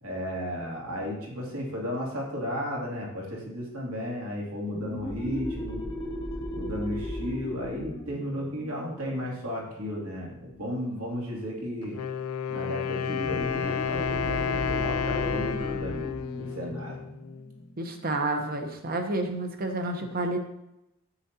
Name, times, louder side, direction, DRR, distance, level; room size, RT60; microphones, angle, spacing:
voice 1, 0.0-5.8 6.5-12.0 12.5-16.1 16.4-17.0, equal, 80° right, -3 dB, 2.6 m, -34 dB
sound 1, 4.7-10.0 13.1-18.4, equal, 20° left, 0.8 m, -37 dB
Wind instrument woodwind instrument, 11.8-17.6, left 7 dB, 80° left, 0.5 m, -31 dB
voice 2, 17.8-20.4, right 2 dB, 40° right, 5 dB, 0.9 m, -30 dB
9.7 x 7.8 x 2.8 m, 0.88 s
head